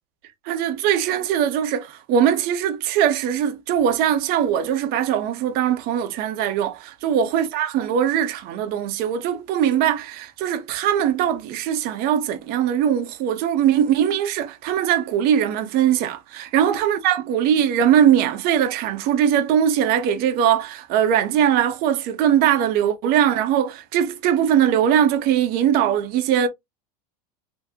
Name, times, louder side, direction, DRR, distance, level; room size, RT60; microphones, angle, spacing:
voice 1, 0.5-26.5, right 9 dB, 50° right, 1.0 m, -21 dB
3.6 x 3.1 x 2.8 m
supercardioid pair, 130°, 20 cm